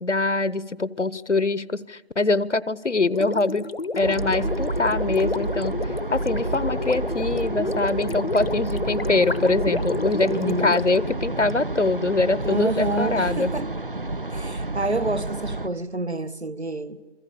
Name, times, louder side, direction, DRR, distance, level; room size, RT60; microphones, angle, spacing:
voice 1, 0.0-3.7 4.0-5.8 6.1-13.5, left 3 dB, 80° left, 1.1 m, -23 dB
Gurgling, 3.1-11.5, left 3 dB, 55° left, 0.9 m, -31 dB
sound 1, 4.0-15.7, right 2 dB, 50° right, 0.9 m, -30 dB
voice 2, 10.3-10.8 12.4-13.7 14.3-17.0, right 2 dB, 65° right, 1.6 m, -28 dB
27.0 x 23.0 x 8.6 m
figure-of-eight pair, 170°, 35 cm